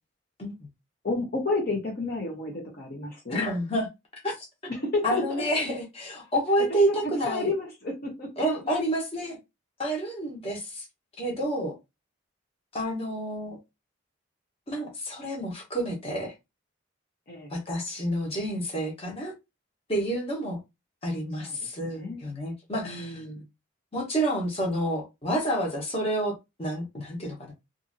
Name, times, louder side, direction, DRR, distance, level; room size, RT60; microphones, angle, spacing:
voice 1, 1.0-3.4 4.7-5.4 6.8-7.0 7.2-8.4 17.3-17.5 21.4-22.2 22.8-23.4, left 3 dB, 50° left, 0.8 m, -31 dB
voice 2, 3.3-3.9 4.2-4.5 5.0-7.5 8.4-9.4 9.8-10.8 11.2-11.7 12.7-13.6 14.7-16.3 17.5-19.3 19.9-20.6 21.0-23.2 23.9-27.5, right 1 dB, 30° left, 1.0 m, -29 dB
2.6 x 2.6 x 2.6 m
head